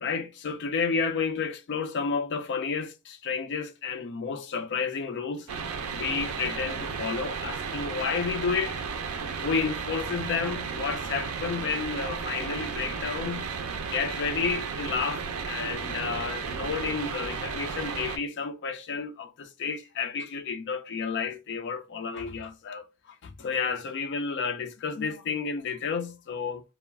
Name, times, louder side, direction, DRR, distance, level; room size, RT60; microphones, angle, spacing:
voice 1, 0.0-5.5 5.9-8.8 9.4-13.5 13.9-26.6, left 5 dB, 55° left, 0.4 m, -31 dB
sound 1, 5.5-18.2, right 5 dB, 70° right, 0.4 m, -34 dB
2.3 x 2.1 x 3.2 m
head